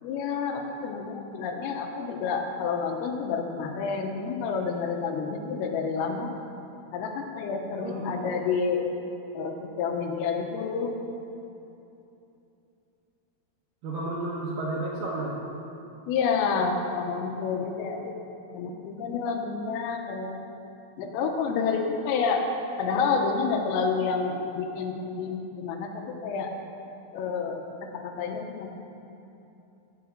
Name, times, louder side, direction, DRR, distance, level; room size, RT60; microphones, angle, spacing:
voice 1, 0.0-6.3 6.9-8.9 9.4-11.0 16.1-18.2 18.5-20.4 21.0-22.5 22.8-26.5 27.1-28.7, left 5 dB, 80° left, 3 dB, 3.6 m, -29 dB
voice 2, 7.8-8.3 13.8-15.4, right 2 dB, 85° right, -5 dB, 1.9 m, -32 dB
17.5 x 6.0 x 7.4 m, 2.9 s
omnidirectional pair, 5.9 m